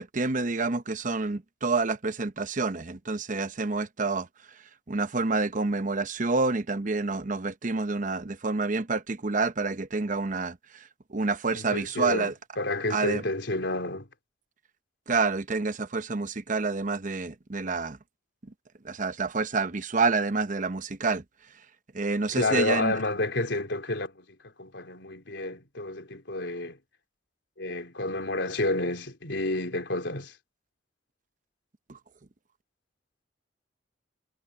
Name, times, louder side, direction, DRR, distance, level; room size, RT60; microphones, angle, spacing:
voice 1, 0.0-4.3 4.9-10.5 11.1-12.3 12.9-13.2 15.1-18.0 18.8-21.2 21.9-22.9, right 3 dB, 45° right, 0.8 m, -28 dB
voice 2, 11.5-14.1 22.3-26.8 27.6-30.3, left 2 dB, 80° left, 3.7 m, -30 dB
head